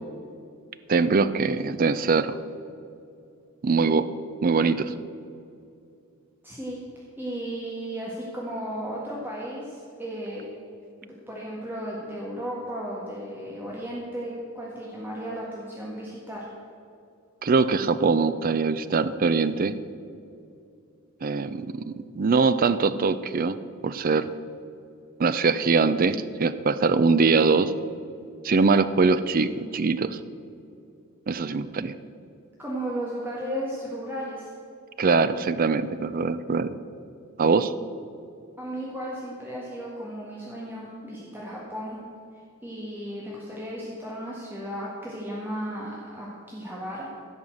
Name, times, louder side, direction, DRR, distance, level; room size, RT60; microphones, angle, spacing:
voice 1, 0.9-2.3 3.6-4.0 4.4-4.9 17.4-19.7 21.2-23.6 23.8-24.2 25.2-27.7 28.4-30.2 31.3-31.9 35.0-36.7 37.4-37.7, right 4 dB, 40° right, 13 dB, 0.4 m, -22 dB
voice 2, 6.4-6.8 7.2-10.5 11.0-16.4 32.6-34.5 38.6-42.0 42.6-47.1, equal, 10° right, -5 dB, 1.7 m, -35 dB
16.0 x 5.6 x 7.6 m, 2.6 s
head